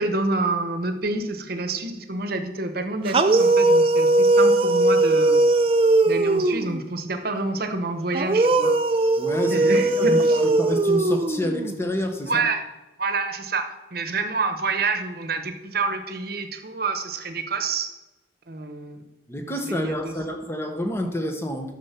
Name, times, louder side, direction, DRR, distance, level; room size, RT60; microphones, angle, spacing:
voice 1, 0.0-5.4 6.1-8.7 9.5-10.4 12.3-12.6 13.0-17.9 18.5-19.0 19.7-20.2, right 3 dB, 55° right, 8 dB, 1.0 m, -28 dB
sound 1, 3.1-6.8 8.1-11.8, right 2 dB, 30° right, 0.5 m, -19 dB
voice 2, 9.2-12.4 19.3-21.7, equal, 15° left, 5 dB, 1.1 m, -28 dB
10.5 x 6.6 x 5.9 m, 1.1 s
head